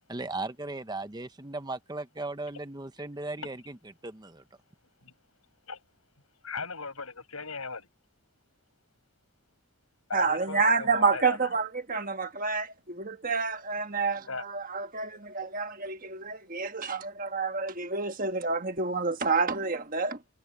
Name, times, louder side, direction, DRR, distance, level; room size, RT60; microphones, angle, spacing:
voice 1, 0.1-3.8 4.0-4.4, right 2 dB, 20° right, 0.7 m, -37 dB
voice 2, 6.4-7.9 10.1-11.5 14.3-14.4, left 4 dB, 75° left, 5.9 m, -37 dB
voice 3, 10.1-20.2, right 4 dB, 40° right, 1.4 m, -29 dB
head